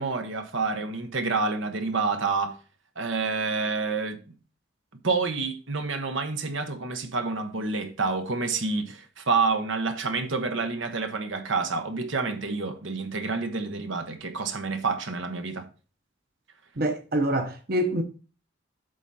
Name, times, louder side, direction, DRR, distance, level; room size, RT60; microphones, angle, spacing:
voice 1, 0.0-2.6 3.0-4.2 5.0-15.7, right 4 dB, 85° right, 1.2 m, -28 dB
voice 2, 16.8-18.0, right 1 dB, 50° right, 0.9 m, -25 dB
8.2 x 5.6 x 4.2 m
head